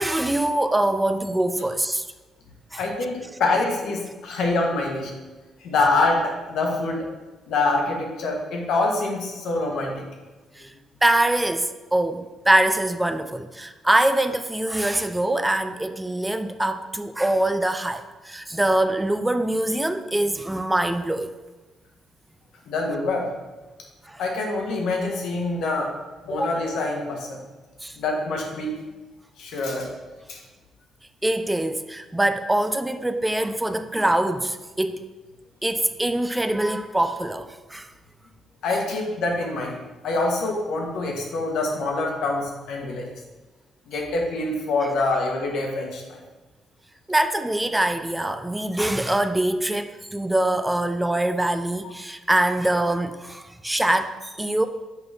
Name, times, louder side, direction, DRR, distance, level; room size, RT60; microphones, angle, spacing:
voice 1, 0.0-2.1 2.7-2.8 10.6-10.7 11.0-21.3 24.1-24.2 26.3-26.5 27.8-28.0 31.2-35.0 35.6-37.9 47.1-54.7, right 1 dB, 10° right, 9 dB, 0.4 m, -24 dB
voice 2, 2.8-5.1 5.6-7.1 7.5-10.1 22.7-23.3 24.2-25.9 26.2-27.4 28.0-28.8 29.4-29.9 30.3-30.4 38.6-39.8 40.0-43.1 43.9-46.2, left 2 dB, 80° left, 0 dB, 1.3 m, -25 dB
5.8 x 5.2 x 3.5 m, 1.2 s
cardioid pair, 90°, 0 cm